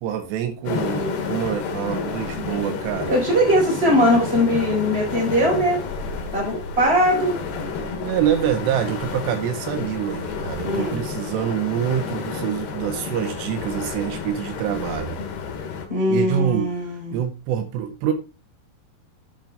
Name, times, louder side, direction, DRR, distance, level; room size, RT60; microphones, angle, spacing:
voice 1, 0.0-3.2 3.9-4.0 8.0-15.2 16.1-16.7 17.1-18.1, right 10 dB, 80° right, 3.1 m, -26 dB
sound 1, 0.7-15.9, left 5 dB, 70° left, 3.5 m, -30 dB
voice 2, 3.1-5.8 6.3-7.4 10.6-11.0 15.9-17.2, equal, 15° right, 4.4 m, -20 dB
8.8 x 8.7 x 3.4 m
omnidirectional pair, 4.9 m